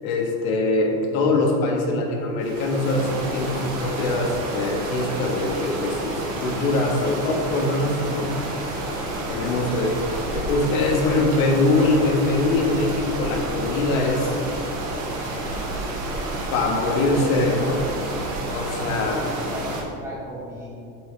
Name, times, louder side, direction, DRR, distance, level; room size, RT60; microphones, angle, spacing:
voice 1, 0.0-6.1 6.4-8.3 8.9-9.0 9.3-14.4 16.5-17.8 18.4-19.2, left 2 dB, 70° left, 1 dB, 1.4 m, -23 dB
sound 1, 2.4-19.8, right 1 dB, 35° right, 1.3 m, -30 dB
voice 2, 16.6-17.4 18.7-20.7, equal, 5° right, -7 dB, 0.7 m, -35 dB
7.7 x 6.9 x 3.3 m, 2.7 s
supercardioid pair, 180°, 44 cm